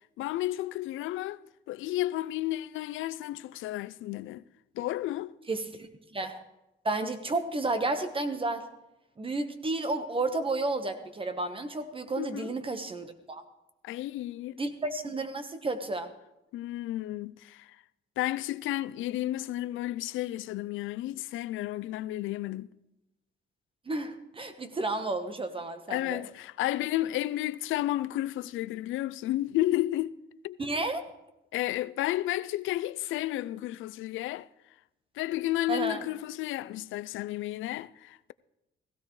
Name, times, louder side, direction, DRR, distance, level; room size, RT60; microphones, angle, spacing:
voice 1, 0.2-4.4 4.8-5.3 12.2-12.5 13.8-14.6 16.5-17.8 18.2-22.7 25.9-30.1 30.4-30.6 31.5-34.5 35.2-38.3, left 15 dB, 80° left, 0.4 m, -32 dB
voice 2, 5.5-6.4 6.8-8.6 9.2-13.4 14.6-16.1 23.9-26.2 30.6-31.0 35.7-36.1, right 2 dB, 25° right, 1.2 m, -32 dB
16.5 x 15.5 x 3.2 m
cardioid pair, 90°, 20 cm